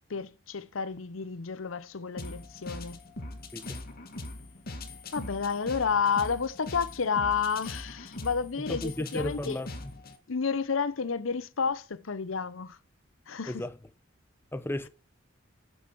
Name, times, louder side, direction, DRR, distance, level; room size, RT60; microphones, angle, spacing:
voice 1, 0.1-3.0 5.1-9.6 10.3-12.8 13.3-13.6, left 5 dB, 80° left, 0.8 m, -30 dB
sound 1, 2.2-10.2, left 2 dB, 50° left, 1.8 m, -41 dB
voice 2, 3.5-3.9 8.7-9.7 13.5-13.8 14.5-14.9, left 1 dB, 10° left, 0.9 m, -34 dB
9.0 x 7.6 x 6.1 m
head